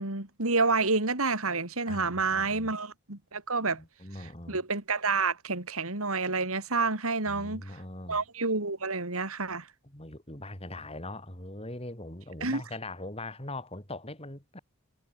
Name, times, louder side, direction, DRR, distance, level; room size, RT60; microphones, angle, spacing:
voice 1, 0.0-3.8 4.2-7.8 8.1-9.7 12.4-12.6, right 3 dB, 70° right, 3.5 m, -29 dB
voice 2, 1.9-2.7 3.7-4.6 7.2-8.2 9.8-14.6, left 2 dB, 25° left, 4.5 m, -41 dB
head